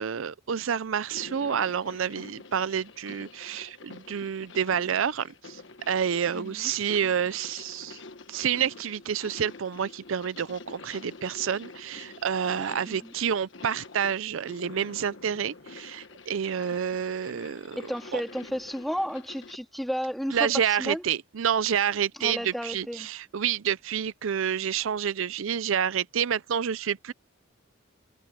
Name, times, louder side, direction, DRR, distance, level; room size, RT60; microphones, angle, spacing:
voice 1, 0.0-5.6 5.9-8.0 8.3-17.8 18.1-18.2 20.3-27.1, right 8 dB, 75° right, 0.5 m, -29 dB
sound 1, 1.0-19.6, left 3 dB, 60° left, 1.4 m, -47 dB
voice 2, 6.3-6.7 12.9-13.1 17.8-21.0 22.2-23.1, equal, ahead, 2.4 m, -33 dB
head